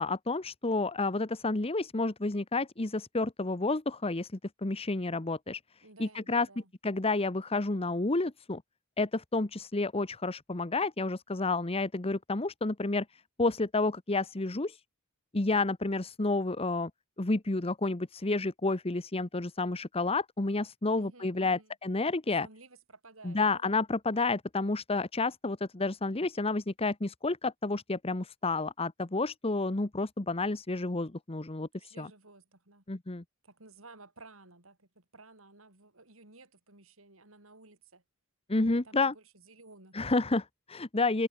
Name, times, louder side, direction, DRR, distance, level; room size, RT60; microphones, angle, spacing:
voice 1, 0.0-4.3 4.6-5.6 6.0-6.5 6.8-8.6 9.0-13.0 13.4-14.8 15.3-16.9 17.2-22.5 23.2-32.1 32.9-33.2 38.5-39.1 39.9-41.3, left 3 dB, 30° left, 1.0 m, -30 dB
voice 2, 5.8-6.7 20.9-21.7 22.4-23.7 31.8-32.8 33.4-38.0 38.8-40.0, right 3 dB, 90° right, 5.9 m, -55 dB
head